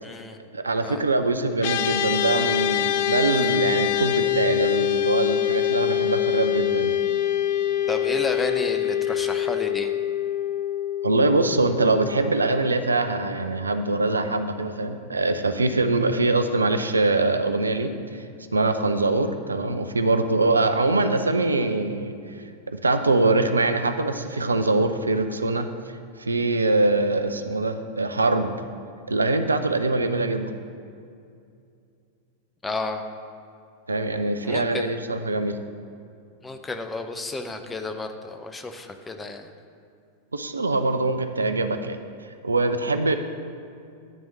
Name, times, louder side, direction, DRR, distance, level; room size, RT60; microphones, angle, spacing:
voice 1, 0.0-0.4 0.8-1.0 7.9-9.9 32.6-33.0 34.4-35.0 36.4-39.5, left 3 dB, 15° left, 7 dB, 0.6 m, -31 dB
voice 2, 0.5-7.0 11.0-18.2 18.5-22.1 22.7-25.7 26.2-28.5 29.1-30.5 33.9-35.6 40.3-42.0 42.4-43.2, right 2 dB, 80° right, 8 dB, 0.5 m, -23 dB
sound 1, 1.6-13.1, left 11 dB, 55° left, 0.5 m, -25 dB
10.5 x 3.6 x 7.3 m, 2.4 s
figure-of-eight pair, 90°, 0 cm